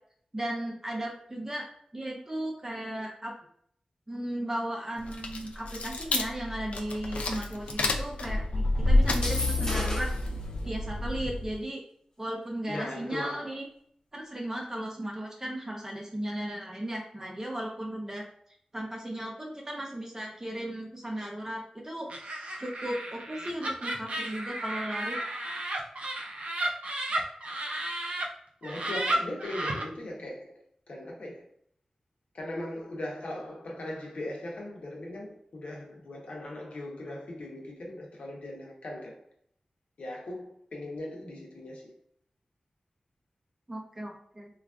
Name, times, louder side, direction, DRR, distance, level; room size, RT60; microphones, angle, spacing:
voice 1, 0.3-1.6 1.9-3.3 4.1-10.1 10.6-11.8 12.2-13.6 14.1-18.2 18.7-22.1 22.6-25.2 43.7-44.5, right 1 dB, 25° right, 0.5 m, -36 dB
sound 1, 5.0-11.5, left 2 dB, 85° left, 0.3 m, -28 dB
sound 2, 9.1-10.3, left 1 dB, 30° left, 0.7 m, -34 dB
voice 2, 12.7-13.5 28.6-31.4 32.3-39.2 40.0-41.9, left 1 dB, 70° left, 0.8 m, -39 dB
Laughter, 22.1-28.3 28.6-29.8, right 1 dB, 75° right, 0.5 m, -33 dB
3.3 x 2.4 x 2.3 m
wide cardioid pair, 100°, 2 cm